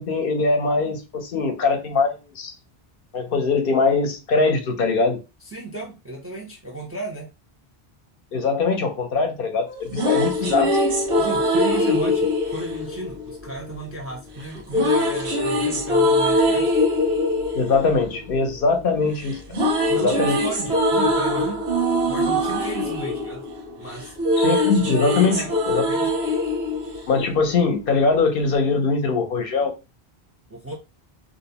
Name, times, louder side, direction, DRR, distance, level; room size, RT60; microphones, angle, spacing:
voice 1, 0.0-2.5 3.1-5.2 8.3-10.7 17.5-19.4 20.0-20.4 24.4-25.8 27.1-29.7, left 4 dB, 65° left, 4 dB, 0.7 m, -22 dB
voice 2, 5.4-7.3 10.0-10.6 11.1-16.7 19.9-21.7 22.0-23.4 23.8-24.2 25.0-25.6 25.9-26.1 30.5-30.7, right 1 dB, 20° right, -1 dB, 0.5 m, -34 dB
sound 1, 9.7-13.8 14.7-18.9 19.2-27.7, left 1 dB, 90° right, 1.0 m, -22 dB
2.5 x 2.0 x 2.7 m, 0.28 s
omnidirectional pair, 1.0 m